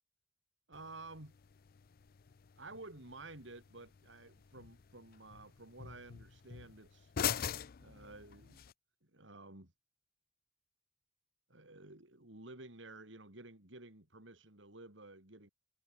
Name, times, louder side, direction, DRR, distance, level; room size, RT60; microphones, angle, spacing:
sound 1, 0.7-8.7, left 9 dB, 50° left, 0.5 m, -44 dB
voice 1, 0.7-1.4 2.6-7.1 7.8-8.6 9.0-9.7 11.5-15.5, right 2 dB, 75° right, 4.0 m, -52 dB
head